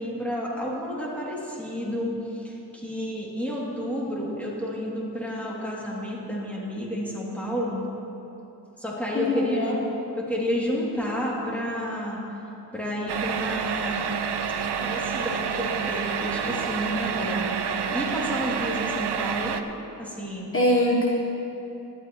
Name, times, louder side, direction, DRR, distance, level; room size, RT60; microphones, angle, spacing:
voice 1, 0.0-7.8 8.8-9.8 10.2-12.2 12.7-14.1 14.6-19.7 20.0-20.5, equal, 5° left, -5 dB, 2.6 m, -31 dB
voice 2, 9.1-9.8 20.5-21.1, left 1 dB, 35° left, -4 dB, 1.2 m, -22 dB
sound 1, 13.1-19.6, right 6 dB, 85° right, 0.6 m, -28 dB
18.0 x 12.0 x 3.0 m, 2.9 s
wide cardioid pair, 115°, 39 cm